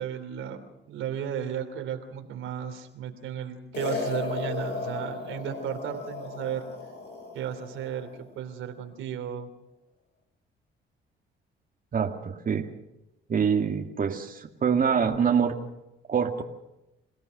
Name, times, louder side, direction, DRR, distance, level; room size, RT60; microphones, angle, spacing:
voice 1, 0.0-6.6 7.3-9.5, right 8 dB, 90° right, 5 dB, 3.1 m, -34 dB
sound 1, 3.7-8.2, left 4 dB, 60° left, 6.1 m, -35 dB
voice 2, 11.9-12.7 13.3-15.5 16.1-16.4, right 7 dB, 45° right, 3 dB, 2.1 m, -25 dB
27.5 x 16.5 x 6.6 m, 0.91 s
cardioid pair, 90°, 20 cm